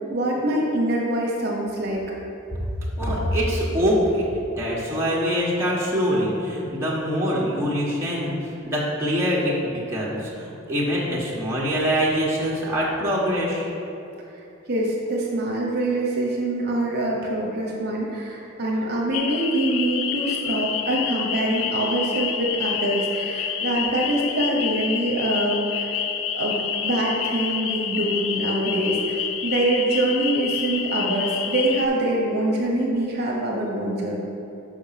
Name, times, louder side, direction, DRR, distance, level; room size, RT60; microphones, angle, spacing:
voice 1, 0.1-2.0 14.7-26.0 26.3-34.2, right 1 dB, 50° right, -3 dB, 1.0 m, -24 dB
voice 2, 3.0-13.7 18.7-18.9 20.4-20.5, equal, 10° right, -6 dB, 1.1 m, -24 dB
sound 1, 19.1-31.9, left 8 dB, 65° left, 0.4 m, -28 dB
6.3 x 4.9 x 5.7 m, 2.9 s
head